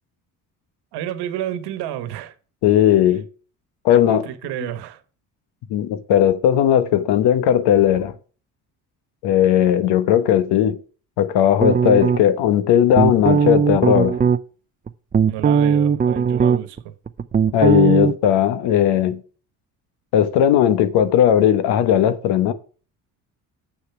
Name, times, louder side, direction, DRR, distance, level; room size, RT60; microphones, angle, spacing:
voice 1, 0.9-2.3 4.1-5.0 15.3-16.9, right 12 dB, 85° right, 1.2 m, -30 dB
voice 2, 2.6-3.3 3.8-4.3 5.7-8.1 9.2-10.8 11.2-14.2 17.5-19.2 20.1-22.5, left 10 dB, 80° left, 1.0 m, -17 dB
sound 1, 11.6-12.5 12.9-14.4 14.9-16.8 17.1-18.1, right 7 dB, 20° right, 0.5 m, -18 dB
7.6 x 6.8 x 5.8 m
cardioid pair, 100°, 39 cm